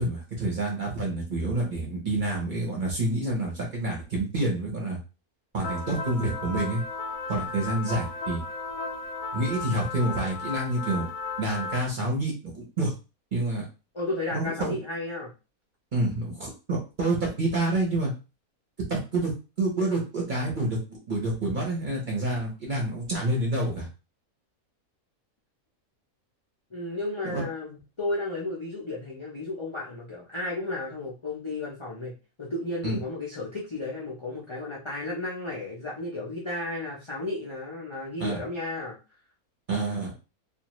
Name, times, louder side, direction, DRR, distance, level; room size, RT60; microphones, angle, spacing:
voice 1, 0.0-5.0 5.5-6.8 7.3-8.4 9.3-11.0 11.4-12.9 13.3-13.6 14.3-14.8 15.9-18.1 18.9-19.3 19.6-20.8 21.1-23.9 27.3-27.4 32.8-33.0 38.2-38.4 39.7-40.1, right 2 dB, 40° right, -2 dB, 0.8 m, -28 dB
sound 1, 5.6-11.9, left 4 dB, 85° left, 1.1 m, -35 dB
voice 2, 13.9-15.3 26.7-32.1 32.4-39.0, left 2 dB, 40° left, -5 dB, 0.4 m, -33 dB
2.5 x 2.4 x 3.0 m, 0.30 s
omnidirectional pair, 1.5 m